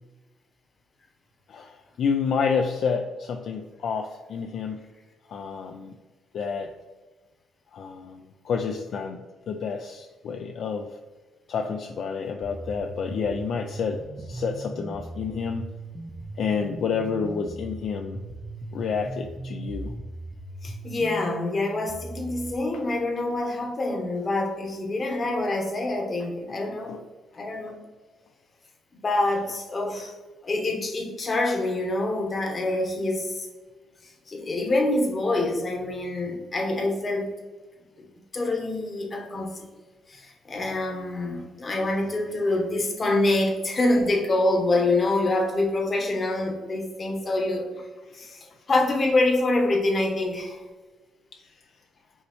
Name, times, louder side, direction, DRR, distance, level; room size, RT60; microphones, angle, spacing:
voice 1, 1.5-4.8 5.3-5.9 6.3-6.7 7.7-9.2 9.5-11.0 11.5-15.7 16.4-18.2 18.7-19.9 26.9-27.0 48.1-48.2 51.3-51.6, left 5 dB, 65° left, 4 dB, 0.3 m, -29 dB
sound 1, 12.4-22.5, right 2 dB, 25° right, 0.5 m, -38 dB
voice 2, 20.6-27.0 27.3-27.8 29.0-30.1 30.4-33.5 34.3-37.3 38.3-39.5 40.1-47.7 48.1-50.6, left 2 dB, 35° left, 2 dB, 1.0 m, -26 dB
5.4 x 3.0 x 3.1 m, 1.3 s
cardioid pair, 90°, 0 cm